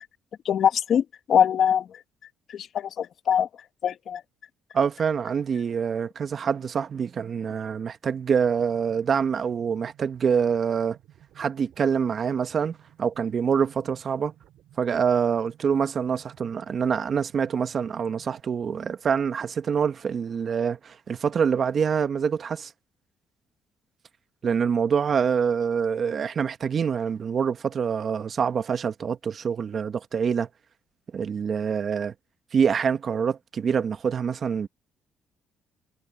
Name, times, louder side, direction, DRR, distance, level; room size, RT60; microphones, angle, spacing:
voice 1, 0.4-1.9 2.5-3.5 3.8-4.2, left 8 dB, 60° left, 1.5 m, -23 dB
voice 2, 4.7-11.0 11.4-14.3 14.8-22.7 24.4-30.5 31.1-32.1 32.5-34.7, right 6 dB, 50° right, 1.3 m, -25 dB
sound 1, 8.4-18.4, right 13 dB, 75° right, 7.2 m, -56 dB
cardioid pair, 85°, 0 cm